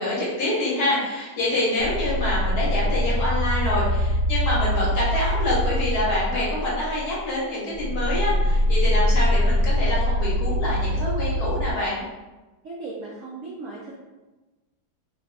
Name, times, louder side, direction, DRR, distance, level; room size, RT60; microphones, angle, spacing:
voice 1, 0.0-12.0, left 1 dB, 60° left, -6 dB, 1.4 m, -26 dB
sound 1, 1.8-7.3 7.7-11.7, equal, 80° left, 1.3 m, -23 dB
voice 2, 12.6-13.9, right 3 dB, 80° right, -4 dB, 0.7 m, -36 dB
3.4 x 2.5 x 3.2 m, 1.2 s
omnidirectional pair, 2.1 m